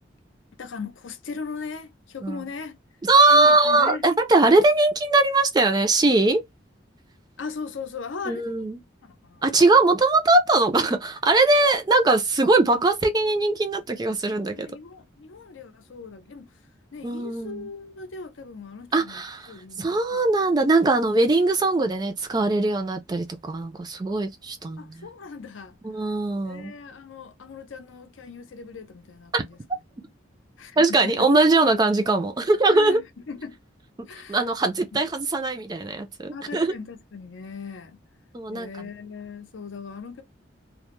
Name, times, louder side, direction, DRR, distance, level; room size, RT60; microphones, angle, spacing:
voice 1, 0.6-2.8 3.3-4.1 7.4-8.7 9.0-9.4 14.3-16.5 16.9-19.2 19.5-20.3 24.8-25.8 26.5-29.6 30.6-31.3 32.7-33.6 34.1-34.4 34.9-35.0 36.3-38.0 38.5-40.2, left 5 dB, 80° left, 0.6 m, -38 dB
voice 2, 3.0-6.4 8.3-8.8 9.4-14.7 17.0-17.7 18.9-25.1 25.8-26.7 29.3-29.4 30.8-33.0 34.3-36.7 38.3-38.7, right 2 dB, 20° right, 0.3 m, -21 dB
2.1 x 2.0 x 2.9 m
head